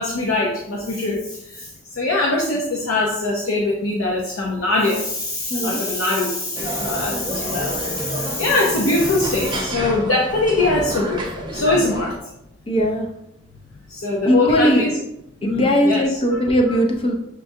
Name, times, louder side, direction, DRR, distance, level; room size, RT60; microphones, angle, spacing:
voice 1, 0.0-1.7 2.0-12.2 13.9-14.9 15.4-16.0, left 2 dB, 80° left, -1 dB, 0.6 m, -22 dB
voice 2, 5.5-6.0 12.7-13.1 14.3-14.9 15.4-17.1, equal, 25° left, 1 dB, 0.5 m, -19 dB
sound 1, 6.5-12.2, right 1 dB, 20° right, 0.5 m, -29 dB
6.5 x 2.3 x 2.7 m, 0.85 s
head